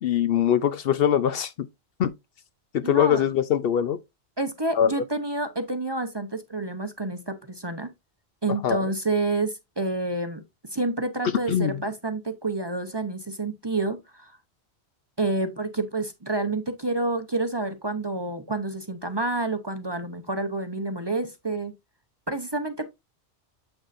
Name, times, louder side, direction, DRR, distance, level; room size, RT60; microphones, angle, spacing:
voice 1, 0.0-1.7 2.0-2.1 2.7-4.0 4.8-4.9 8.6-8.9 11.5-11.8, left 9 dB, 65° left, 0.8 m, -22 dB
voice 2, 2.8-3.2 4.4-7.9 8.4-10.4 10.7-14.4 15.2-21.7 22.3-22.9, right 2 dB, 25° right, 0.7 m, -29 dB
7.9 x 6.1 x 2.5 m
omnidirectional pair, 1.1 m